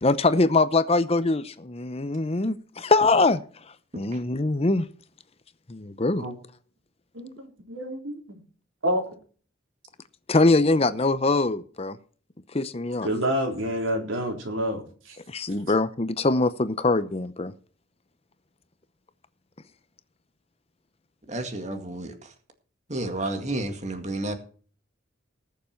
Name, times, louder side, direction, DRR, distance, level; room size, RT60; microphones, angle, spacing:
voice 1, 0.0-3.4 4.0-4.8 5.7-6.2 10.3-12.0 12.5-13.1 15.3-17.5, left 3 dB, 30° left, 13 dB, 0.7 m, -23 dB
voice 2, 7.1-8.4 8.8-9.1 13.0-15.2, equal, 80° right, 3 dB, 3.9 m, -28 dB
voice 3, 21.3-22.3 22.9-24.3, right 2 dB, 35° right, 6 dB, 2.1 m, -31 dB
19.5 x 7.2 x 4.5 m, 0.41 s
head